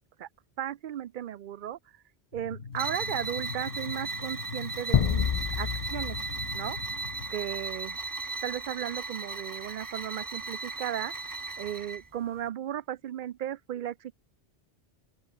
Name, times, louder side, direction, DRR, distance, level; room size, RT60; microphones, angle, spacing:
voice 1, 0.6-1.8 2.3-6.2 6.5-6.8 7.3-8.0 8.4-11.1 11.6-14.1, right 11 dB, 60° right, 0.6 m, -35 dB
sound 1, 2.3-7.3, left 5 dB, 90° left, 2.0 m, -41 dB
sound 2, 2.7-12.1, right 3 dB, 20° right, 0.7 m, -37 dB
sound 3, 4.9-7.5, left 9 dB, 60° left, 0.3 m, -29 dB
open air
omnidirectional pair, 1.1 m